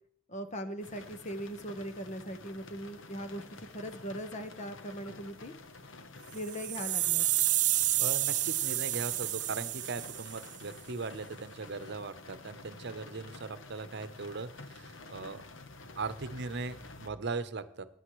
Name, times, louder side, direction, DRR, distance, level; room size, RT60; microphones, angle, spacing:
voice 1, 0.3-5.5 6.3-7.2, equal, 35° left, 8 dB, 1.2 m, -40 dB
sound 1, 0.8-17.1, left 3 dB, 70° left, 1.0 m, -50 dB
sound 2, 6.3-10.5, right 14 dB, 40° right, 0.4 m, -30 dB
voice 2, 8.0-15.4 16.0-17.8, right 4 dB, 60° right, 12 dB, 0.9 m, -39 dB
16.0 x 9.4 x 3.2 m, 0.69 s
head